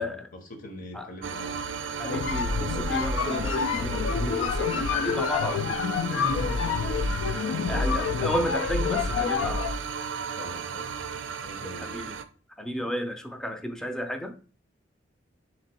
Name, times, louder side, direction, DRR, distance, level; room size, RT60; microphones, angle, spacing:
voice 1, 0.3-1.6 6.1-8.0 10.3-11.0 11.4-11.9, left 1 dB, 45° left, 4 dB, 0.9 m, -41 dB
sound 1, 1.2-12.2, right 6 dB, 75° right, 0.4 m, -35 dB
sound 2, 2.0-9.8, left 6 dB, 75° left, 0.3 m, -28 dB
voice 2, 2.0-5.8 7.3-7.4 7.7-9.7 11.8-12.1 12.6-14.3, equal, 5° left, 6 dB, 0.4 m, -33 dB
3.6 x 3.0 x 4.3 m, 0.39 s
head